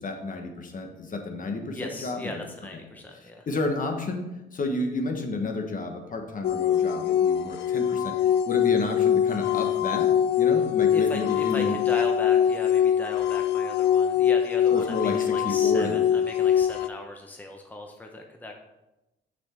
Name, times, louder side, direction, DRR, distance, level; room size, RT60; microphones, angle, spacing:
voice 1, 0.0-2.4 3.1-10.1 10.4-11.8 14.7-16.0, left 3 dB, 45° left, 4 dB, 1.3 m, -31 dB
voice 2, 1.7-3.5 10.9-18.6, left 1 dB, 10° left, 2 dB, 0.9 m, -37 dB
sound 1, 6.4-16.9, left 9 dB, 60° left, 0.4 m, -23 dB
6.6 x 6.0 x 4.4 m, 0.97 s
cardioid pair, 90°, 20 cm